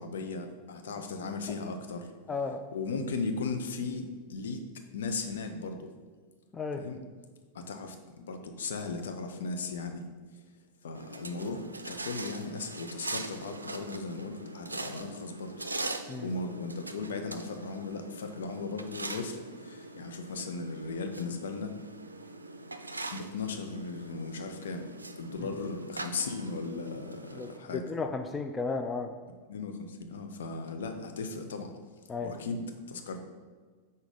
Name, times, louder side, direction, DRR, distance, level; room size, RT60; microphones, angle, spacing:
voice 1, 0.0-2.1 2.7-4.6 4.9-5.9 6.8-7.0 7.5-8.0 8.2-10.0 10.8-15.5 16.2-21.8 23.1-24.9 25.2-27.8 29.5-31.8 32.2-33.2, left 4 dB, 65° left, 5 dB, 0.7 m, -37 dB
voice 2, 2.3-2.6 6.5-6.8 16.1-16.3 27.3-29.1 32.1-32.3, left 4 dB, 15° left, 6 dB, 0.4 m, -34 dB
sound 1, 10.9-27.6, right 2 dB, 80° right, 0.4 m, -42 dB
6.1 x 4.0 x 5.2 m, 1.5 s
figure-of-eight pair, 90°, 0 cm